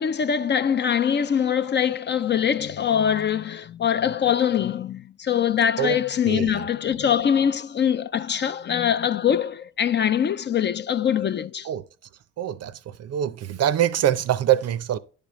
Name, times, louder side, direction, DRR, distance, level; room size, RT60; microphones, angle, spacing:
voice 1, 0.0-11.7, left 8 dB, 35° left, 0.4 m, -23 dB
voice 2, 6.2-6.7 11.6-11.8 12.4-15.0, right 11 dB, 55° right, 0.5 m, -24 dB
10.0 x 5.1 x 3.1 m
cardioid pair, 90°, 30 cm